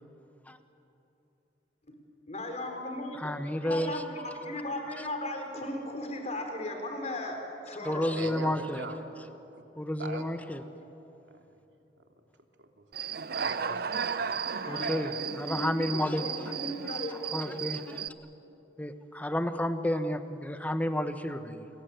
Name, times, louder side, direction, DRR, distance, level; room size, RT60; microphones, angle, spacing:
voice 1, 2.3-3.3 3.6-8.1 14.5-17.9, left 1 dB, 40° left, 4 dB, 4.4 m, -37 dB
voice 2, 3.2-3.9 7.8-8.9 9.8-10.6 14.7-16.3 17.3-18.0 18.8-21.7, left 1 dB, 10° left, 9 dB, 1.2 m, -31 dB
voice 3, 8.2-9.3 10.0-10.2 12.6-12.7 13.3-14.0, right 3 dB, 85° right, 4 dB, 2.8 m, -39 dB
Human voice / Cricket, 12.9-18.1, right 7 dB, 60° right, 0.7 m, -35 dB
29.5 x 22.0 x 9.2 m, 3.0 s
head